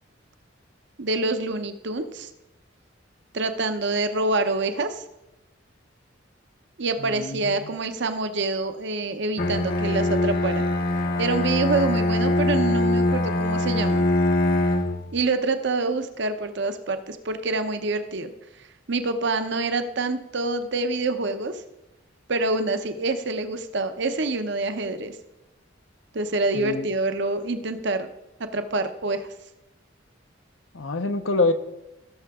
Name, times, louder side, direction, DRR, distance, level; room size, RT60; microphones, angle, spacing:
voice 1, 1.0-2.3 3.3-5.0 6.8-10.6 11.2-14.0 15.1-18.3 18.9-21.6 22.3-25.2 26.1-28.1 28.5-29.3, right 3 dB, 65° right, 9 dB, 0.8 m, -26 dB
voice 2, 7.0-7.7 26.5-26.9 30.7-31.5, left 3 dB, 90° left, 9 dB, 0.9 m, -26 dB
Bowed string instrument, 9.4-15.1, left 1 dB, 50° left, 0.9 m, -23 dB
16.5 x 6.9 x 3.7 m, 0.92 s
head